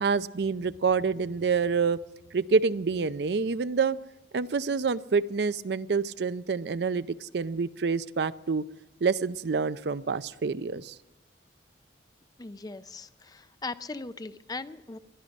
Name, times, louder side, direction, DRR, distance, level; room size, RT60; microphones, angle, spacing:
voice 1, 0.0-2.0 2.3-4.0 4.3-8.6 9.0-11.0, right 5 dB, 65° right, 15 dB, 0.5 m, -27 dB
voice 2, 12.4-15.0, left 3 dB, 20° left, 13 dB, 0.5 m, -39 dB
21.5 x 12.5 x 5.2 m, 1.1 s
head